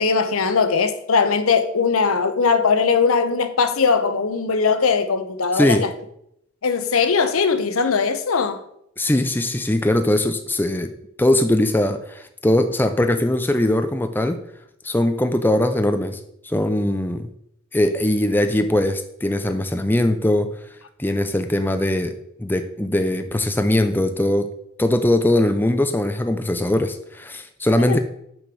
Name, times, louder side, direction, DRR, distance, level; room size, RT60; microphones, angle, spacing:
voice 1, 0.0-5.9 6.6-8.6 27.8-28.0, left 5 dB, 80° left, 0.8 m, -20 dB
voice 2, 9.0-10.9 11.2-14.4 14.8-17.3 17.7-20.5 21.0-24.5 24.8-28.0, left 1 dB, 10° left, 0.4 m, -20 dB
6.3 x 5.1 x 6.1 m
head